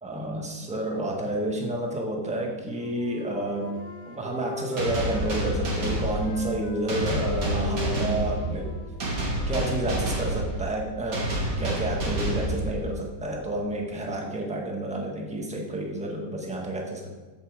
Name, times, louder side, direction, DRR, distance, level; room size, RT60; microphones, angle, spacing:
voice 1, 0.0-3.8 4.1-8.7 9.5-11.2 11.6-17.1, right 1 dB, 5° right, -1 dB, 1.3 m, -30 dB
Wind instrument woodwind instrument, 2.5-5.8 6.1-9.9, left 2 dB, 40° left, 1.9 m, -40 dB
sound 1, 4.8-13.2, right 1 dB, 55° right, 2.3 m, -29 dB
13.5 x 5.6 x 5.1 m, 1.3 s
omnidirectional pair, 1.8 m